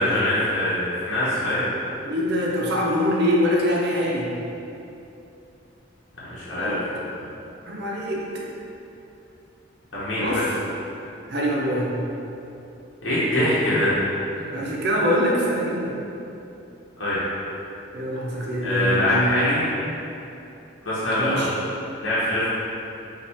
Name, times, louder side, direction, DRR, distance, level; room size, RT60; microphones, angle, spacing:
voice 1, 0.0-1.7 6.2-6.8 9.9-10.4 13.0-13.9 17.0-17.2 18.6-19.6 20.8-21.4 22.0-22.5, left 1 dB, 75° left, -10 dB, 0.9 m, -23 dB
voice 2, 2.0-4.3 6.5-6.8 7.7-8.2 10.2-10.5 11.3-11.9 14.5-15.9 17.9-19.3 21.2-21.5, equal, 55° right, -3 dB, 0.6 m, -24 dB
5.2 x 2.4 x 3.4 m, 2.9 s
head